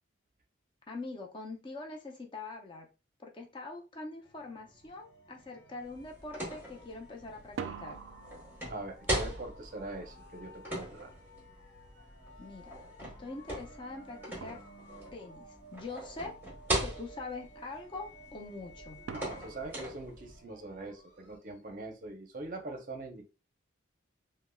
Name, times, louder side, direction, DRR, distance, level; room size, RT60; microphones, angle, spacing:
voice 1, 0.9-2.9 3.2-8.0 12.4-12.7 13.0-14.6 15.1-15.5 15.7-16.4 16.8-19.0, left 3 dB, 25° left, 2 dB, 0.5 m, -43 dB
sound 1, 4.2-21.7, equal, 60° left, 1.2 m, -56 dB
sound 2, 4.8-5.0 5.3-5.9 7.4-12.2 13.9-14.0 14.4-15.3 19.1-20.8, right 6 dB, 90° right, 0.3 m, -48 dB
sound 3, 5.8-20.4, right 1 dB, 10° right, 0.8 m, -40 dB
voice 2, 8.7-11.1 19.1-23.2, right 2 dB, 45° right, 4 dB, 0.6 m, -42 dB
3.3 x 2.0 x 2.2 m, 0.30 s
head